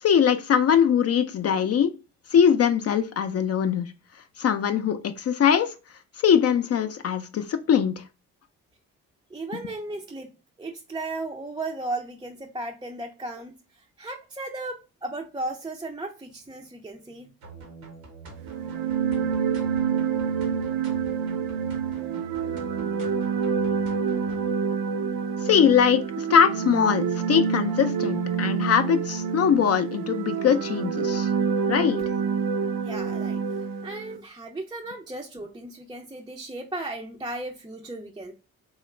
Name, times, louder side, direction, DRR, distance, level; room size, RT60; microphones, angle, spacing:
voice 1, 0.0-1.9 2.3-3.9 4.4-5.7 6.2-8.0 25.4-31.3 31.7-32.0, left 8 dB, 45° left, 0.4 m, -22 dB
voice 2, 9.3-10.3 10.6-17.3 32.8-38.3, right 2 dB, 15° right, 0.4 m, -35 dB
sound 1, 17.4-24.5, right 2 dB, 90° right, 1.0 m, -44 dB
sound 2, 18.4-34.2, right 6 dB, 75° right, 0.5 m, -27 dB
2.8 x 2.4 x 3.1 m
supercardioid pair, 55°, 35 cm